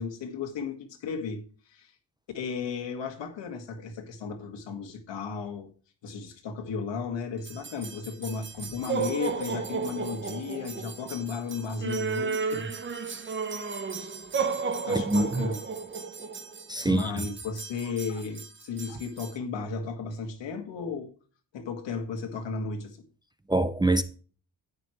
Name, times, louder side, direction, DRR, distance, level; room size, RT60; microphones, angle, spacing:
voice 1, 0.0-1.4 1.7-1.9 2.3-5.7 6.0-12.7 13.0-13.3 14.9-15.6 16.8-21.1 21.5-23.0, left 5 dB, 85° left, 2.2 m, -34 dB
sound 1, 7.4-19.4, right 5 dB, 25° right, 0.9 m, -34 dB
voice 2, 14.9-15.5 16.7-17.3 23.5-24.0, right 2 dB, 10° right, 0.4 m, -25 dB
11.0 x 9.5 x 3.2 m
wide cardioid pair, 175°, 43 cm